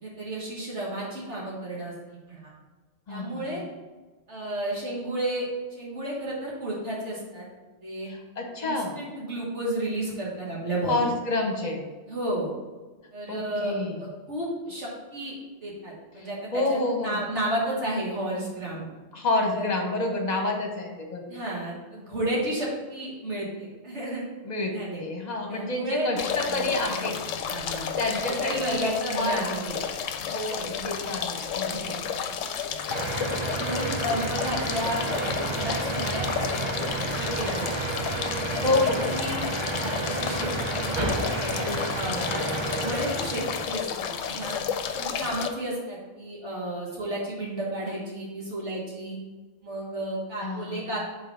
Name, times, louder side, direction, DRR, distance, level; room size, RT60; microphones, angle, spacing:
voice 1, 0.0-1.9 2.3-2.5 3.1-3.6 4.3-7.5 7.8-8.1 8.6-11.1 12.1-12.5 13.1-15.3 15.6-18.9 19.5-19.7 21.3-24.2 24.7-25.0 25.5-26.1 27.4-29.8 30.5-30.9 31.7-32.0 32.3-32.4 33.4-36.8 37.1-37.7 38.5-38.7 39.0-39.4 39.8-40.9 41.3-42.4 42.8-43.9 44.2-44.6 44.9-49.2 49.6-51.0, right 1 dB, 60° right, -5 dB, 1.8 m, -32 dB
voice 2, 3.1-3.6 8.0-8.9 10.9-11.8 13.3-14.0 16.2-17.2 19.1-21.3 24.4-24.7 25.0-27.2 28.0-29.4 30.3-32.2 38.3-39.0 39.4-39.8 42.0-42.3 50.4-50.9, left 2 dB, 35° left, 2 dB, 1.1 m, -29 dB
sound 1, 26.2-45.5, left 7 dB, 80° left, 0.9 m, -32 dB
sound 2, 32.9-43.7, right 2 dB, 30° right, 0.6 m, -31 dB
5.5 x 4.2 x 5.5 m, 1.3 s
omnidirectional pair, 1.3 m